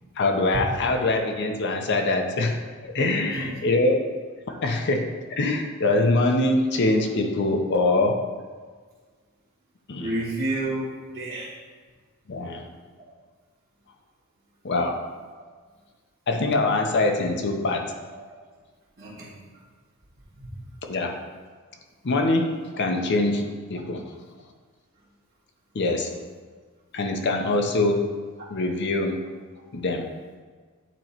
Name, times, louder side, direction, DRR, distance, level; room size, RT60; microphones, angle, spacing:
voice 1, 0.2-4.0 4.6-8.2 9.9-10.1 12.3-12.7 14.6-15.0 16.3-17.9 20.9-21.2 22.0-24.1 25.7-26.1 26.9-28.1 28.5-29.2 29.7-30.1, left 2 dB, 50° left, 3 dB, 0.6 m, -24 dB
voice 2, 2.9-3.5 10.0-11.5 19.0-19.3 20.4-20.6, right 1 dB, 50° right, -10 dB, 1.5 m, -31 dB
9.0 x 3.0 x 4.4 m, 1.5 s
head